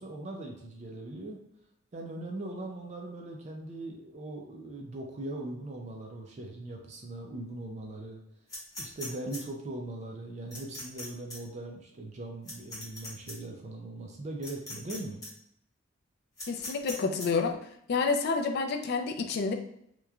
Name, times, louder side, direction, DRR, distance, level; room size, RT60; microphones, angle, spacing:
voice 1, 0.0-1.4 1.9-8.2 8.8-15.2, right 2 dB, 35° right, 1 dB, 0.4 m, -40 dB
sound 1, 8.5-9.4 10.5-11.0 11.3-11.4 12.4-13.3 14.4-15.0 15.2-15.3 16.4-17.3, left 2 dB, 20° left, 0.9 m, -40 dB
voice 2, 16.5-17.6 17.9-19.5, left 4 dB, 55° left, 4 dB, 0.3 m, -29 dB
2.9 x 2.1 x 2.3 m, 0.76 s
head